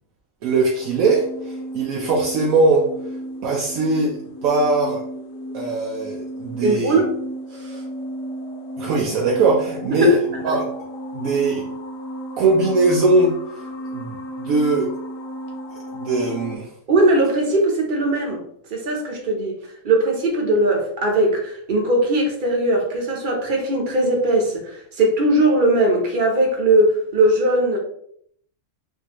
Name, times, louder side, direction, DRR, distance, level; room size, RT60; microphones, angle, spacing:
voice 1, 0.4-2.9 3.4-4.1 4.4-5.0 5.5-7.0 8.8-10.2 10.4-10.7 11.1-11.6 12.4-13.7 13.9-14.9 15.9-16.7, right 2 dB, 80° right, -2 dB, 1.0 m, -20 dB
sound 1, 0.8-16.6, equal, 75° left, 1.0 m, -33 dB
voice 2, 6.6-7.1 7.6-7.8 16.9-18.4 18.7-19.6 19.8-27.8, right 2 dB, 45° right, 0 dB, 0.8 m, -19 dB
3.7 x 2.6 x 2.9 m, 0.66 s
omnidirectional pair, 1.5 m